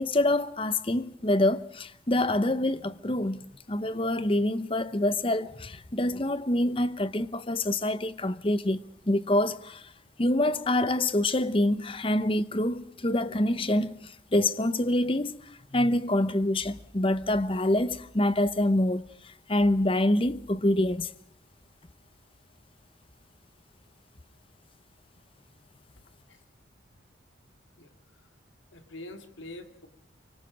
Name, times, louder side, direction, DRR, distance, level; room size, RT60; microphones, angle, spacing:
voice 1, 0.0-9.8 10.2-15.4 15.7-21.1, left 1 dB, 30° left, 0.9 m, -26 dB
voice 2, 27.8-28.3 28.7-29.9, left 1 dB, 75° left, 2.5 m, -45 dB
24.5 x 23.5 x 5.2 m
head